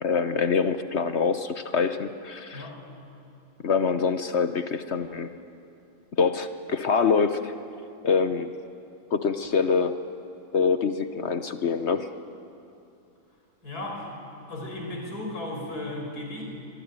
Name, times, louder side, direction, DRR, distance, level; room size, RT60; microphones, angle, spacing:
voice 1, 0.0-2.7 3.6-5.3 6.2-7.5 8.0-8.5 9.1-10.0 10.5-12.1, left 5 dB, 50° left, 10 dB, 1.0 m, -25 dB
voice 2, 13.6-14.1 14.5-16.4, left 1 dB, 85° left, 1 dB, 5.6 m, -35 dB
24.0 x 22.5 x 9.5 m, 2.6 s
omnidirectional pair, 1.6 m